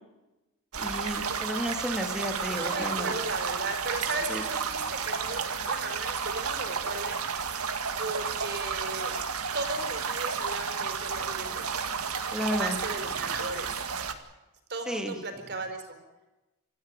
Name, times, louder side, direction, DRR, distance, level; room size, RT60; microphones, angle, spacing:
sound 1, 0.7-14.1, right 6 dB, 80° right, 2.0 m, -32 dB
voice 1, 0.8-3.1 4.3-4.4 12.3-12.8 13.3-13.4 14.9-15.2, equal, 5° right, 4 dB, 2.7 m, -32 dB
voice 2, 2.5-9.1 9.5-11.7 12.5-13.8 14.7-16.0, right 3 dB, 50° right, 7 dB, 4.5 m, -36 dB
26.5 x 14.5 x 9.2 m, 1.0 s
head